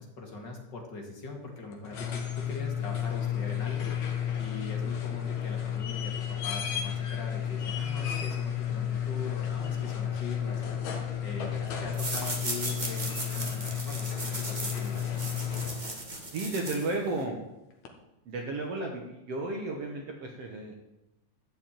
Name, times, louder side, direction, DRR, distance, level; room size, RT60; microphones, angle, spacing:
voice 1, 0.0-10.8 11.2-15.0, left 3 dB, 40° left, 0 dB, 2.4 m, -41 dB
sound 1, 1.7-16.1 17.9-18.0, left 9 dB, 65° left, 2.7 m, -32 dB
sound 2, 11.9-17.2, right 2 dB, 25° right, 1.1 m, -37 dB
voice 2, 16.3-17.4 18.3-20.7, right 2 dB, 60° right, 1 dB, 2.0 m, -33 dB
13.5 x 5.2 x 8.8 m, 0.94 s
omnidirectional pair, 3.5 m